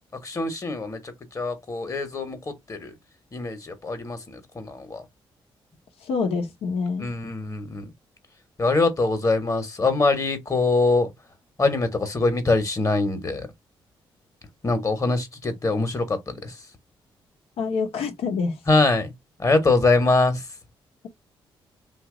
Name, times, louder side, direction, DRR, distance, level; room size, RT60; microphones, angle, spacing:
voice 1, 0.2-2.9 3.3-5.0 7.0-7.9 8.6-11.1 11.6-13.5 14.6-16.6 18.7-19.1 19.4-20.5, left 3 dB, 35° left, 1.2 m, -23 dB
voice 2, 6.0-7.1 17.6-18.6, left 5 dB, 85° left, 0.9 m, -26 dB
2.9 x 2.5 x 3.7 m
cardioid pair, 70°, 10 cm